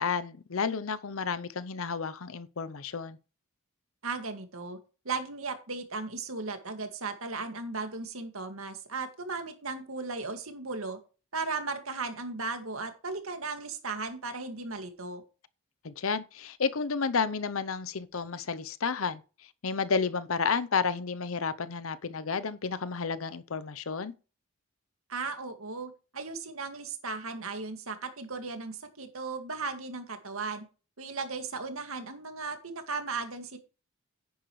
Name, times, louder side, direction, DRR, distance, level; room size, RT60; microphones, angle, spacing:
voice 1, 0.0-3.2 15.8-19.2 19.6-24.1, left 5 dB, 70° left, 0.7 m, -31 dB
voice 2, 4.0-4.8 5.0-11.0 11.3-15.2 25.1-30.6 31.0-33.6, right 4 dB, 75° right, 2.0 m, -36 dB
10.0 x 9.5 x 3.2 m
head